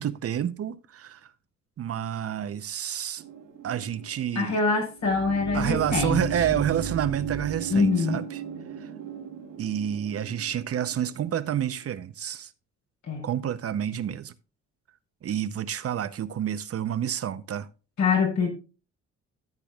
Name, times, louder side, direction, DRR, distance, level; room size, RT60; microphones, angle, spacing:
voice 1, 0.0-1.3 1.8-3.2 3.6-4.6 5.5-8.4 8.8-8.9 9.6-12.5 13.2-14.3 15.2-17.7, right 10 dB, 50° right, 0.7 m, -29 dB
sound 1, 3.2-11.8, right 8 dB, 85° right, 2.2 m, -36 dB
voice 2, 4.3-6.2 6.5-6.6 7.7-8.2 13.1-13.2 18.0-18.5, left 4 dB, 70° left, 4.4 m, -24 dB
14.0 x 8.2 x 2.3 m
cardioid pair, 90°, 30 cm